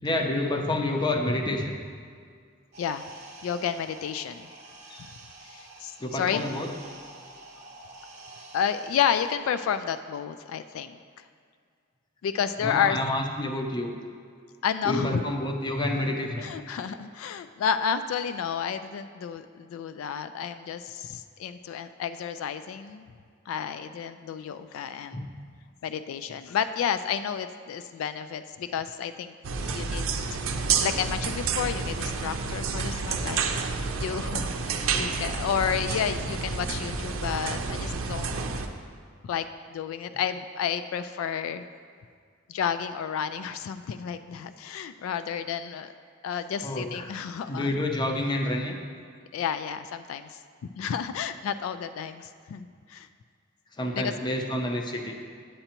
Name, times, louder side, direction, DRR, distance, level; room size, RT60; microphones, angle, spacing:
voice 1, 0.0-1.7 4.9-5.0 6.0-6.7 12.6-13.9 14.8-16.5 25.1-25.3 46.6-47.2 47.5-48.7 53.8-55.2, left 1 dB, 20° left, 3 dB, 0.6 m, -28 dB
sound 1, 2.7-9.3, right 2 dB, 35° right, 1.1 m, -48 dB
voice 2, 3.4-4.5 5.4-6.4 8.5-11.0 12.2-13.0 14.6-15.2 16.4-23.1 23.5-25.2 25.8-29.3 29.6-30.4 30.8-33.4 33.7-38.5 39.2-39.5 39.7-41.6 42.5-45.9 46.2-47.7 49.3-50.4 50.8-53.1 54.0-54.1, left 7 dB, 85° left, 13 dB, 0.3 m, -31 dB
sound 2, 29.4-38.7, right 5 dB, 80° right, 0.5 m, -29 dB
8.9 x 7.9 x 2.9 m, 2.1 s
head